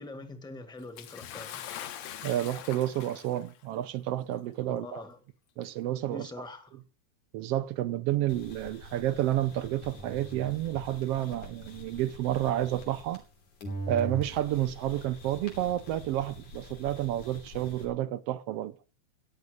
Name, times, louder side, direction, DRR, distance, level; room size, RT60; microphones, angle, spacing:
voice 1, 0.0-1.6 4.6-5.2 6.1-6.8, left 2 dB, 5° left, 0.9 m, -43 dB
Bathtub (filling or washing) / Splash splatter, 1.0-3.6 4.5-4.6 5.6-5.7, left 10 dB, 70° left, 2.2 m, -42 dB
voice 2, 2.2-5.0 5.6-6.3 7.3-13.2 13.9-18.7, right 13 dB, 70° right, 1.6 m, -30 dB
sound 1, 8.3-13.3 13.6-17.8, right 1 dB, 85° left, 4.8 m, -43 dB
15.0 x 9.8 x 6.6 m
omnidirectional pair, 3.3 m